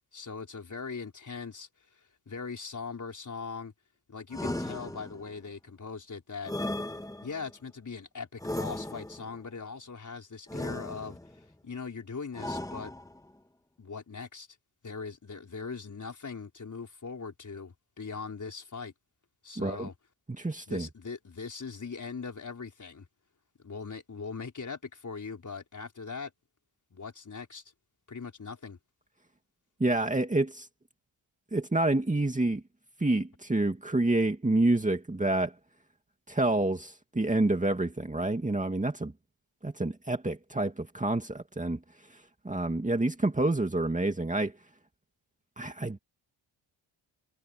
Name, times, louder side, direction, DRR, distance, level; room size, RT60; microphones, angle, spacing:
voice 1, 0.1-1.7 1.9-3.7 4.1-6.5 7.2-11.2 11.6-12.9 13.8-14.5 14.8-18.9 19.4-19.9 20.7-23.1 23.6-26.3 26.9-27.6 28.1-28.8, left 5 dB, 35° left, 4.9 m, -40 dB
sound 1, 4.3-5.4 6.4-7.5 8.4-9.4 10.5-11.4 12.3-13.3, left 1 dB, 5° left, 1.4 m, -36 dB
voice 2, 19.6-19.9 20.3-20.9 29.8-30.7 31.5-32.6 33.0-35.5 36.3-39.1 39.6-41.8 42.4-44.5 45.6-46.0, right 2 dB, 15° right, 2.4 m, -28 dB
wide cardioid pair, 115°, 50 cm